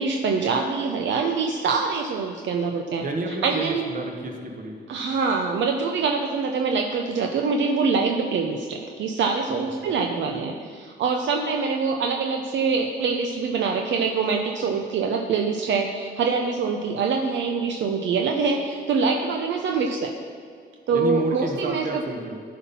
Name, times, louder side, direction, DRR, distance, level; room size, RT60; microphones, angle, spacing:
voice 1, 0.0-3.9 4.9-20.1 20.9-22.0, right 4 dB, 65° right, 2 dB, 0.7 m, -24 dB
voice 2, 3.0-4.8 9.8-10.0 20.9-22.4, right 3 dB, 45° right, 3 dB, 1.3 m, -30 dB
12.5 x 4.3 x 5.5 m, 2.2 s
cardioid pair, 90°, 20 cm